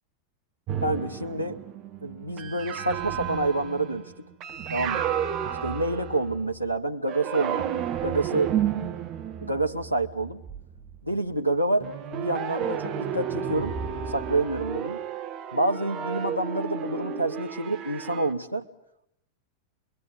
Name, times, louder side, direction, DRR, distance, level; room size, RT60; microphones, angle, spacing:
sound 1, 0.7-6.6 7.1-11.0 11.8-18.3, right 9 dB, 35° right, 1.6 m, -32 dB
voice 1, 0.8-1.6 2.0-4.3 4.7-5.0 5.6-7.6 8.0-8.5 9.4-10.4 11.0-13.7 14.1-15.0 15.5-18.7, right 2 dB, 90° left, 11 dB, 1.0 m, -28 dB
26.5 x 22.0 x 9.1 m, 0.78 s
figure-of-eight pair, 90°, 0 cm